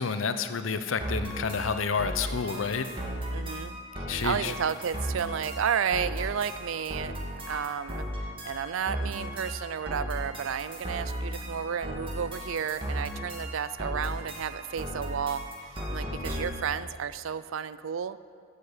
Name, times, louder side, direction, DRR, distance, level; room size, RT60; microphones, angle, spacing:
voice 1, 0.0-2.9 4.1-4.5, left 5 dB, 85° left, 10 dB, 0.7 m, -29 dB
sound 1, 1.0-16.7, equal, 25° right, 2.0 m, -36 dB
voice 2, 3.3-7.1 7.5-18.2, right 7 dB, 85° right, 15 dB, 0.4 m, -32 dB
12.0 x 8.5 x 6.7 m, 2.3 s
head